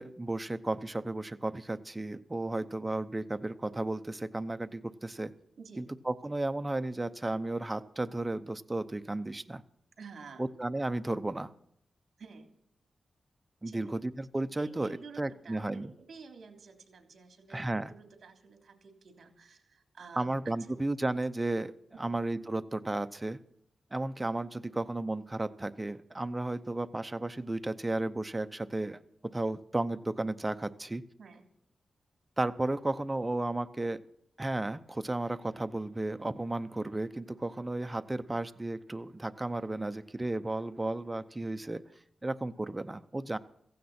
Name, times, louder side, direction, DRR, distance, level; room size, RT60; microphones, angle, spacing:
voice 1, 0.0-5.3 5.8-9.6 10.4-11.5 13.6-15.9 17.5-17.9 20.2-23.4 23.9-29.0 29.3-31.0 32.4-34.0 34.4-41.8 42.2-43.4, right 2 dB, 15° right, 10 dB, 0.7 m, -34 dB
voice 2, 5.6-5.9 10.0-10.5 12.2-12.6 13.6-14.0 14.6-20.5 21.9-22.1 31.2-31.4, right 5 dB, 60° right, 5 dB, 3.3 m, -51 dB
16.0 x 15.5 x 4.3 m, 0.73 s
wide cardioid pair, 105°, 0 cm